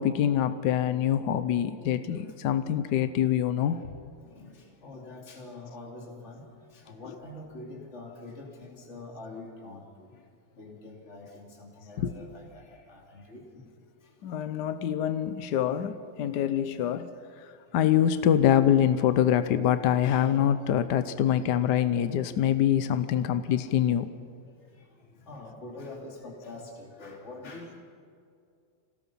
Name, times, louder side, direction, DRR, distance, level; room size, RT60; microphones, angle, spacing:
voice 1, 0.0-3.8 12.0-12.2 14.2-17.1 17.7-24.1, left 10 dB, 65° left, 1.3 m, -25 dB
voice 2, 4.2-6.4 6.7-10.1 10.6-13.7 14.0-14.3 16.0-16.2 17.7-18.0 24.4-27.8, left 2 dB, 35° left, 3.0 m, -45 dB
26.5 x 18.0 x 5.7 m
omnidirectional pair, 2.1 m